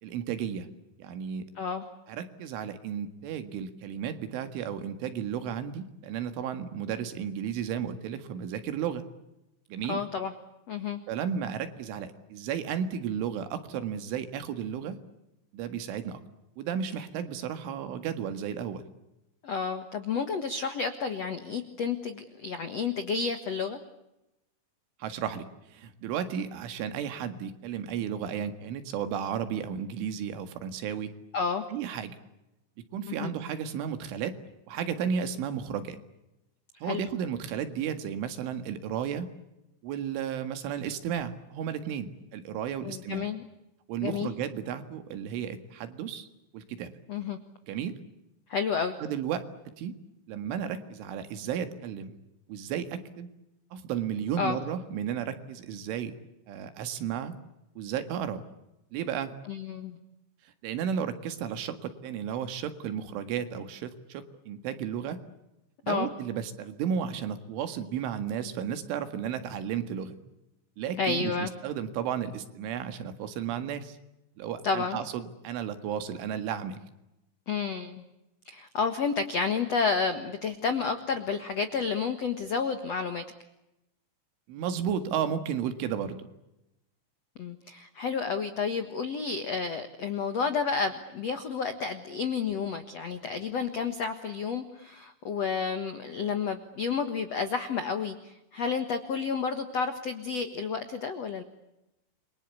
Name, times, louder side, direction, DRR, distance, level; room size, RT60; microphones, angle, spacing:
voice 1, 0.0-0.7 1.0-1.5 2.1-9.0 9.7-10.0 11.1-15.0 15.5-16.2 16.6-18.9 25.0-31.1 31.7-32.2 32.9-34.4 34.7-36.0 36.8-39.3 39.8-43.3 43.9-46.3 46.5-46.9 47.7-47.9 49.0-49.4 49.8-50.0 50.3-52.1 52.5-53.3 53.7-56.2 56.5-57.4 57.8-58.4 58.9-59.3 60.6-65.2 65.8-70.2 70.8-74.0 74.4-76.8 84.5-86.3, right 8 dB, 80° right, 10 dB, 4.3 m, -33 dB
voice 2, 1.5-1.9 9.9-10.3 10.7-11.0 19.4-23.8 31.3-31.6 33.1-33.3 36.8-37.0 42.8-43.4 44.0-44.3 47.1-47.4 48.5-48.9 54.4-54.6 59.5-60.0 65.9-66.1 71.0-71.5 74.6-75.0 77.5-78.0 78.4-83.2 87.4-101.4, left 5 dB, 80° left, 9 dB, 1.4 m, -30 dB
28.5 x 23.5 x 8.4 m, 0.92 s
omnidirectional pair, 5.5 m